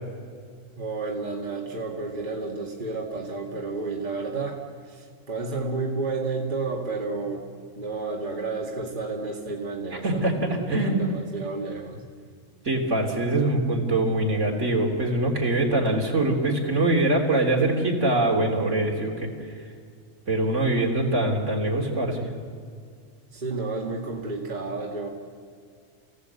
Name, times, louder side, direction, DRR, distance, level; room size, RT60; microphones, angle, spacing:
voice 1, 0.8-4.6 4.9-7.5 7.7-12.0 23.3-25.1, right 3 dB, 40° right, -2 dB, 2.2 m, -31 dB
voice 2, 10.0-11.1 12.6-19.3 20.3-22.3, right 2 dB, 65° right, 0 dB, 3.5 m, -23 dB
28.5 x 17.0 x 8.2 m, 2.2 s
omnidirectional pair, 1.3 m